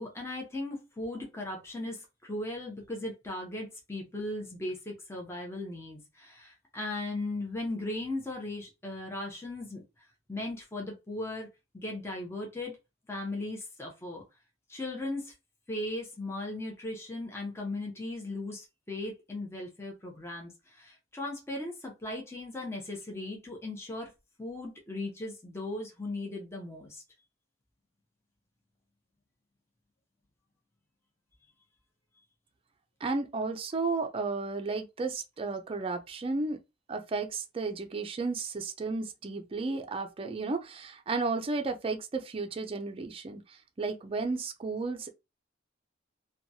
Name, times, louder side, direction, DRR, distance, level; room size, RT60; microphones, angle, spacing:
voice 1, 0.0-9.8 10.3-11.5 11.7-12.8 13.1-14.2 14.7-15.3 15.7-24.1 24.4-27.0, left 2 dB, 15° left, 0.7 m, -37 dB
voice 2, 33.0-36.6 36.9-45.1, right 3 dB, 30° right, 0.4 m, -33 dB
2.9 x 2.2 x 2.7 m
head